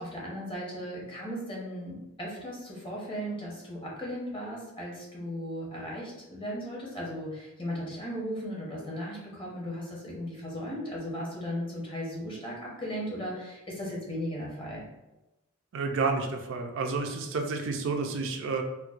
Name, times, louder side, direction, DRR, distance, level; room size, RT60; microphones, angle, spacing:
voice 1, 0.0-14.8, equal, 25° left, -4 dB, 0.9 m, -36 dB
voice 2, 15.7-18.6, right 4 dB, 60° right, 4 dB, 0.4 m, -30 dB
4.4 x 2.1 x 2.4 m, 1.0 s
head